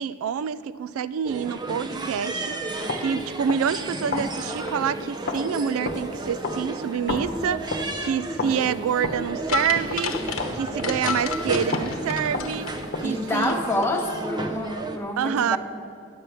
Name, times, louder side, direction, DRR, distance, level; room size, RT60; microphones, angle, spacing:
voice 1, 0.0-13.6 15.2-15.6, right 7 dB, 75° right, 16 dB, 0.3 m, -27 dB
sound 1, 1.2-15.0, right 2 dB, 20° right, 0.6 m, -33 dB
sound 2, 2.8-11.4 11.7-13.3, left 2 dB, 50° left, 1.0 m, -34 dB
sound 3, 9.5-13.6 13.8-13.9, left 5 dB, 75° left, 0.9 m, -31 dB
voice 2, 13.0-15.6, left 1 dB, 10° left, 2 dB, 1.1 m, -27 dB
10.0 x 7.4 x 6.8 m, 2.6 s
head